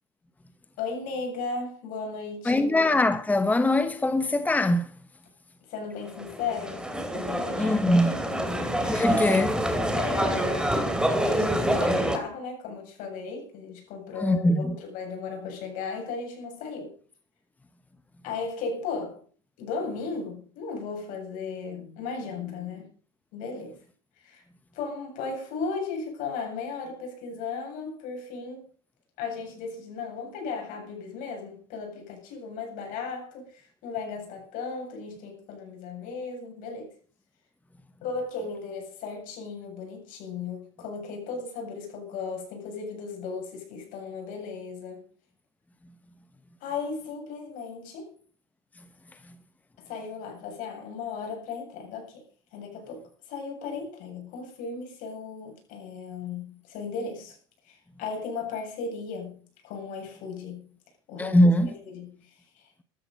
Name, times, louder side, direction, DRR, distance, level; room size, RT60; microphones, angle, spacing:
voice 1, 0.8-2.7 5.7-6.8 7.1-7.8 8.3-8.4 8.8-9.2 10.0-10.8 11.1-16.9 18.2-19.2 19.6-22.8 23.3-23.8 24.2-24.4 24.7-28.6 29.2-36.9 38.0-45.0 46.6-48.1 49.9-52.2 52.5-57.4 57.7-59.4 59.6-60.7 61.1-61.4 61.7-62.2 62.6-62.7, left 4 dB, 60° left, 7.7 m, -36 dB
voice 2, 2.4-4.9 7.6-8.1 8.9-9.5 14.2-14.7 61.2-61.7, left 1 dB, 10° left, 1.1 m, -22 dB
sound 1, 6.1-12.2, right 1 dB, 5° right, 3.1 m, -27 dB
13.5 x 13.5 x 5.4 m
hypercardioid pair, 80°, 16 cm